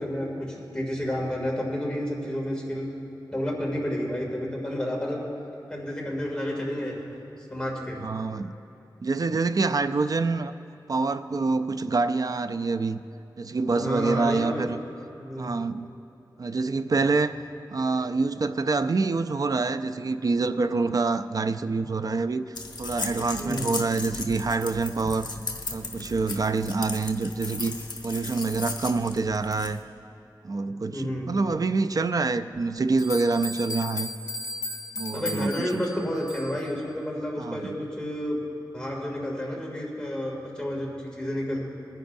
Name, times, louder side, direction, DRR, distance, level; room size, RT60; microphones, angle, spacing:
voice 1, 0.0-2.9 3.3-5.2 5.7-7.0 7.5-8.0 13.7-14.7 15.2-15.7 23.4-23.8 30.9-31.4 35.1-38.4 38.7-41.6, equal, 10° left, -3 dB, 2.4 m, -30 dB
voice 2, 8.0-8.6 9.0-10.5 10.9-13.0 13.4-14.8 15.4-15.9 16.4-17.4 17.7-22.4 22.8-25.3 25.7-27.8 28.0-29.8 30.4-34.1 35.0-35.8 37.4-37.8, right 3 dB, 50° right, 11 dB, 0.4 m, -26 dB
sound 1, 22.5-29.8, left 3 dB, 70° left, 1.0 m, -36 dB
sound 2, 33.0-36.7, left 3 dB, 50° left, 1.2 m, -36 dB
22.5 x 10.0 x 2.6 m, 2.9 s
wide cardioid pair, 95°, 8 cm